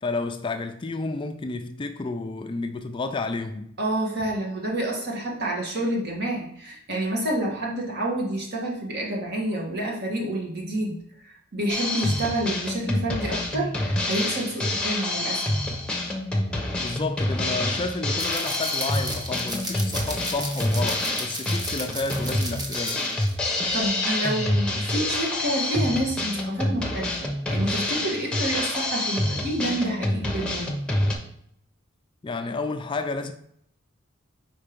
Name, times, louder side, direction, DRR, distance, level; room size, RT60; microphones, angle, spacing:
voice 1, 0.0-3.7 16.8-23.0 32.2-33.3, left 3 dB, 25° left, 0.4 m, -31 dB
voice 2, 3.8-11.0 11.5-15.4 23.4-30.7, right 1 dB, 55° right, 1.6 m, -28 dB
Drum kit, 11.7-31.1, left 1 dB, 5° left, 0.9 m, -27 dB
sound 1, 18.2-23.3 23.6-23.9, right 1 dB, 20° right, 1.0 m, -35 dB
4.6 x 4.3 x 5.2 m
head